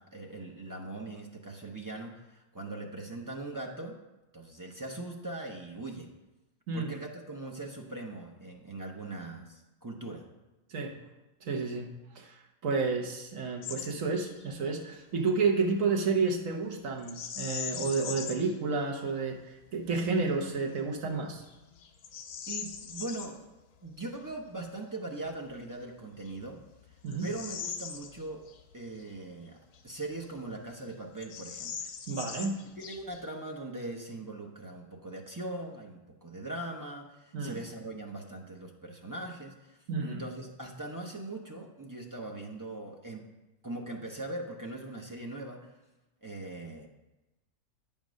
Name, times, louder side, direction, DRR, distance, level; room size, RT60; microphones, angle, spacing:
voice 1, 0.0-3.9 4.3-6.1 6.7-10.2 22.5-23.4 23.8-26.6 27.2-28.4 28.7-29.6 29.8-31.9 32.8-43.2 43.6-45.7 46.2-46.9, right 2 dB, 30° right, 0 dB, 0.3 m, -40 dB
voice 2, 11.4-12.3 12.6-21.4 27.0-27.3 32.1-32.6 37.3-37.6 39.9-40.2, right 4 dB, 60° right, 2 dB, 1.3 m, -31 dB
Bird vocalization bird call bird song, 13.6-13.9 14.2-14.5 17.0-18.5 19.1-19.2 19.8-20.2 20.8-20.9 21.4-23.3 25.4-25.5 26.2-28.6 29.0-29.1 29.7-30.5 30.8-30.9 31.2-33.3, left 7 dB, 80° left, 1.2 m, -41 dB
9.1 x 3.6 x 6.2 m, 1.0 s
omnidirectional pair, 1.6 m